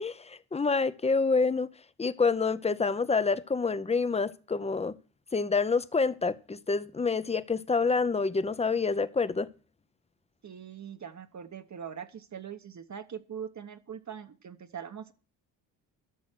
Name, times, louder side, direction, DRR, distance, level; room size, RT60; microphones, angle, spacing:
voice 1, 0.0-1.7 2.0-4.9 5.3-9.5, left 4 dB, 15° left, 0.7 m, -27 dB
voice 2, 10.4-15.1, right 8 dB, 40° right, 1.1 m, -42 dB
12.0 x 6.3 x 6.1 m
supercardioid pair, 65°, 43 cm